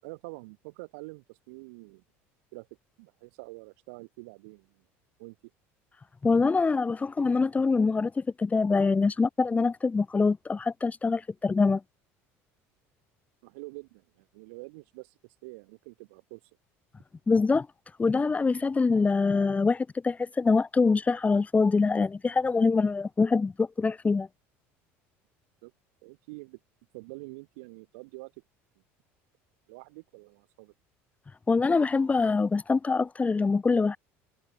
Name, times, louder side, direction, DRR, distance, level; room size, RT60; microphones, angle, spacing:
voice 1, 0.0-2.0 2.5-2.7 3.0-4.8 5.2-5.4 13.4-15.1 15.4-16.4 25.6-25.7 26.0-26.6 26.9-28.3 29.7-30.7, right 27 dB, 80° right, 3.6 m, -46 dB
voice 2, 6.2-11.8 17.3-17.7 18.0-24.3 31.5-34.0, left 4 dB, 20° left, 1.6 m, -24 dB
supercardioid pair, 90°, 7 cm